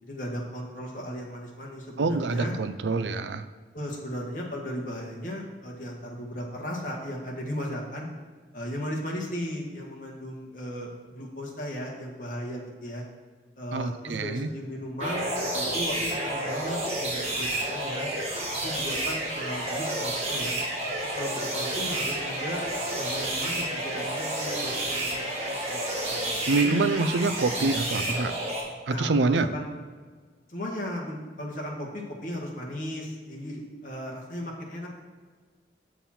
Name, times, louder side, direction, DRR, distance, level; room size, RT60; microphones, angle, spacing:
voice 1, 0.0-2.5 3.7-8.1 8.5-13.0 13.6-18.1 18.6-20.6 21.1-22.6 22.9-26.4 26.6-26.8 28.9-29.7 30.5-34.9, equal, 45° left, -2 dB, 1.5 m, -36 dB
voice 2, 2.0-3.4 13.7-14.5 26.5-28.3 28.9-29.5, right 3 dB, 80° right, 12 dB, 0.5 m, -26 dB
sound 1, 15.0-28.6, right 1 dB, 35° right, 1.8 m, -30 dB
7.4 x 7.0 x 4.3 m, 1.5 s
head